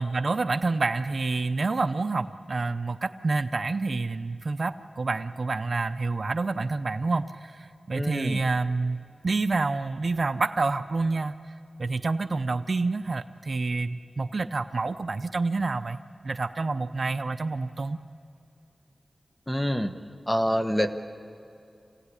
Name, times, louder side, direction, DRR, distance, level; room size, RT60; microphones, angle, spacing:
voice 1, 0.0-11.4 11.8-18.0, right 3 dB, 50° right, 11 dB, 0.7 m, -28 dB
voice 2, 7.9-8.4 19.5-20.0 20.3-20.9, equal, 10° left, 8 dB, 1.3 m, -26 dB
27.5 x 17.0 x 9.9 m, 2.7 s
wide cardioid pair, 85°, 0 cm